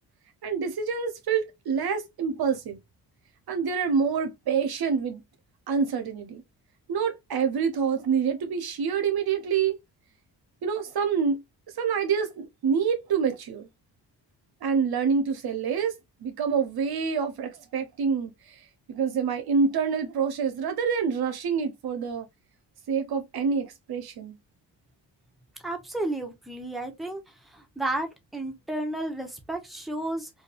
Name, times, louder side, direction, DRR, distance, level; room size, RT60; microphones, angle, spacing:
voice 1, 0.4-2.8 3.5-5.2 5.7-6.4 6.9-9.7 10.6-11.4 11.8-13.7 14.6-15.9 16.2-18.6 18.9-22.3 22.9-24.4, right 6 dB, 55° right, 0.7 m, -27 dB
voice 2, 25.6-27.2 27.5-30.3, right 1 dB, ahead, 0.9 m, -32 dB
2.6 x 2.4 x 2.4 m
supercardioid pair, 55°, 44 cm